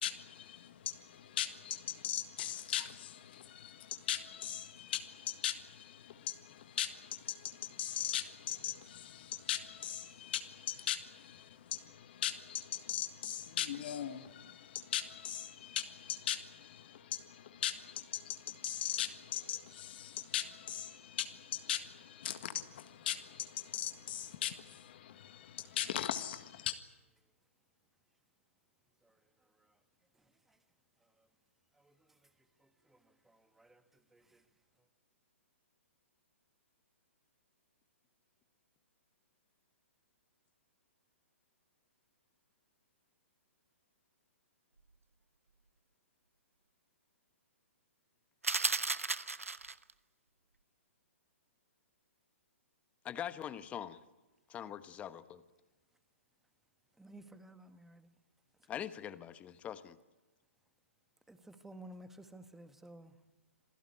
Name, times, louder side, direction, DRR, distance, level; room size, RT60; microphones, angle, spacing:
voice 1, 0.0-26.7, left 11 dB, 50° left, 1.7 m, -39 dB
voice 2, 32.6-33.0 33.2-33.8 34.1-34.4 57.0-58.1 61.3-63.1, right 1 dB, 5° right, 1.5 m, -54 dB
sound 1, 48.4-49.9, right 3 dB, 85° right, 1.1 m, -34 dB
voice 3, 53.0-54.0 54.5-55.4 58.7-60.0, left 10 dB, 20° left, 1.2 m, -43 dB
27.0 x 17.0 x 9.9 m
figure-of-eight pair, 125°, 7 cm